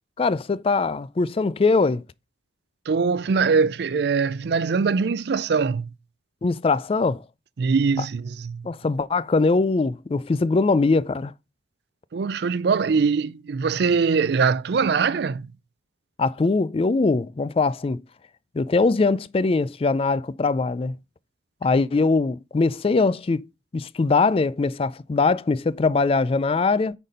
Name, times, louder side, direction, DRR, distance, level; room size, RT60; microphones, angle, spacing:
voice 1, 0.2-2.0 6.4-7.2 8.6-11.3 16.2-18.0 18.5-21.0 21.6-23.4 23.7-26.9, left 3 dB, 30° left, 0.3 m, -22 dB
voice 2, 2.9-5.9 7.6-8.7 12.1-15.5, right 5 dB, 60° right, 0.4 m, -22 dB
9.1 x 4.2 x 5.1 m
head